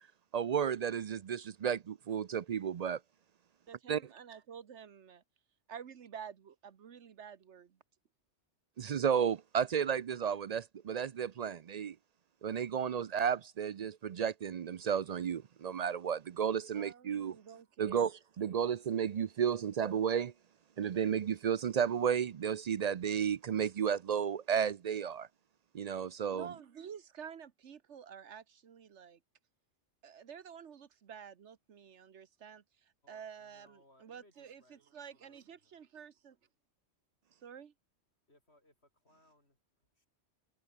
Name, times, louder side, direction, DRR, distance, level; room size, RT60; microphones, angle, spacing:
voice 1, 0.3-3.0 3.9-4.0 8.8-12.0 12.4-17.4 17.8-20.3 20.8-25.3 25.7-26.5, right 8 dB, 55° right, 0.4 m, -33 dB
voice 2, 3.7-5.2 5.7-7.8 16.7-18.0 26.3-29.2 30.0-36.4 37.3-37.7, right 7 dB, 75° right, 1.4 m, -50 dB
voice 3, 33.0-35.8 38.3-40.1, left 1 dB, 65° left, 7.8 m, -68 dB
omnidirectional pair, 1.2 m